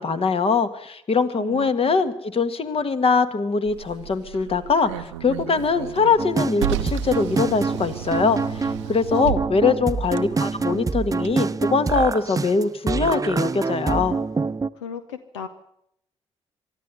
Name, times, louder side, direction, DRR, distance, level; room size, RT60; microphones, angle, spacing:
voice 1, 0.0-14.2, left 4 dB, 40° left, 10 dB, 1.8 m, -22 dB
voice 2, 1.4-2.0 14.8-15.5, left 7 dB, 80° left, 11 dB, 0.8 m, -36 dB
Car, 3.6-11.3, right 13 dB, 80° right, 0.7 m, -34 dB
sound 1, 6.2-14.7, right 4 dB, 25° right, 0.7 m, -26 dB
23.5 x 13.0 x 9.8 m, 0.77 s
figure-of-eight pair, 40°, 15 cm